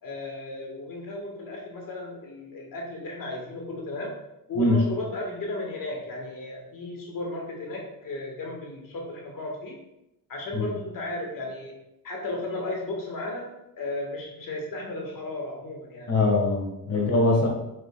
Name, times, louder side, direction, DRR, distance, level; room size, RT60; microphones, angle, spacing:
voice 1, 0.0-4.2 4.5-9.8 10.3-11.7 12.0-16.1 16.9-17.1, left 2 dB, 60° left, 0 dB, 1.5 m, -34 dB
voice 2, 16.1-17.5, left 2 dB, 40° left, 0 dB, 1.4 m, -22 dB
7.0 x 6.3 x 2.2 m, 0.89 s
cardioid pair, 105°, 37 cm